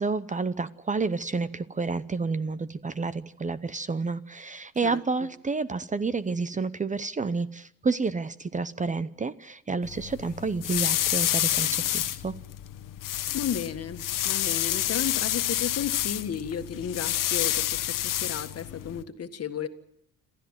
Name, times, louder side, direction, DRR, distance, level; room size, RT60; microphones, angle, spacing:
voice 1, 0.0-12.3, right 4 dB, 20° right, 16 dB, 0.7 m, -30 dB
sound 1, 9.8-19.0, left 13 dB, 70° left, 1.3 m, -29 dB
voice 2, 13.3-17.8 18.2-19.7, left 8 dB, 45° left, 9 dB, 1.8 m, -33 dB
27.0 x 13.5 x 9.2 m, 0.79 s
cardioid pair, 100°, 34 cm